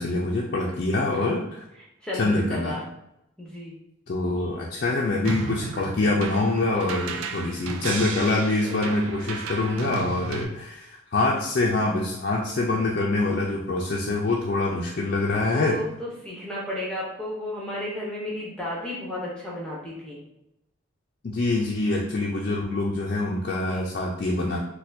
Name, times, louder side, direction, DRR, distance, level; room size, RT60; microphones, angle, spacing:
voice 1, 0.0-1.6 2.2-2.8 4.1-15.8 21.2-24.6, left 2 dB, 50° left, -3 dB, 0.4 m, -25 dB
voice 2, 2.0-2.8 3.4-3.8 6.7-6.8 8.6-8.7 9.2-9.4 15.5-20.2 23.6-23.9, left 1 dB, 5° left, -5 dB, 0.6 m, -33 dB
sound 1, 5.2-10.4, right 4 dB, 90° right, 0.4 m, -34 dB
4.1 x 2.2 x 2.6 m, 0.84 s
head